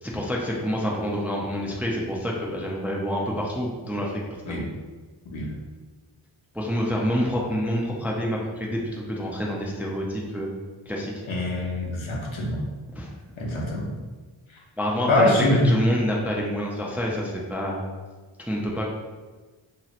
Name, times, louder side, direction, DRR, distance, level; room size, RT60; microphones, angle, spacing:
voice 1, 0.0-4.2 4.5-4.6 6.5-10.5 10.9-11.2 12.9-13.1 14.8-15.3 15.6-17.8 18.4-18.9, equal, 5° right, -2 dB, 0.4 m, -27 dB
voice 2, 11.3-12.7 13.4-13.9 15.1-15.7, left 1 dB, 75° left, -3 dB, 0.8 m, -23 dB
2.9 x 2.8 x 2.5 m, 1.3 s
wide cardioid pair, 65°, 49 cm